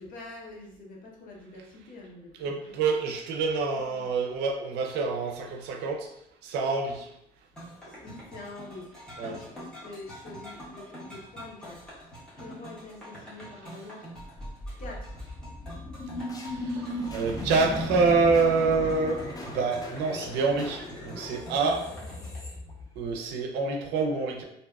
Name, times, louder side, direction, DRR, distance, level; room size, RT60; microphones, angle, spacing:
voice 1, 0.0-2.7 3.7-4.1 7.9-14.1 14.8-15.3, left 2 dB, 55° left, -2 dB, 0.7 m, -46 dB
voice 2, 2.4-6.1 6.4-7.1 9.2-9.4 16.6-16.8 17.1-19.2 19.4-21.8 23.0-24.4, right 4 dB, 90° right, 2 dB, 0.5 m, -26 dB
sound 1, 7.5-22.4, equal, 5° left, 1.0 m, -45 dB
sound 2, 14.2-23.3, left 1 dB, 20° left, 0.4 m, -37 dB
2.6 x 2.1 x 2.3 m, 0.78 s
cardioid pair, 110°, 17 cm